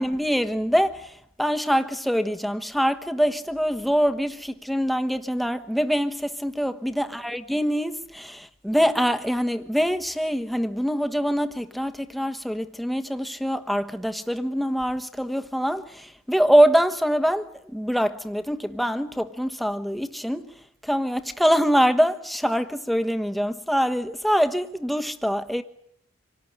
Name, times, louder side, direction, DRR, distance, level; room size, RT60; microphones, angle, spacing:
voice 1, 0.0-20.5 20.8-25.6, equal, ahead, 1.2 m, -24 dB
27.0 x 18.5 x 10.0 m
head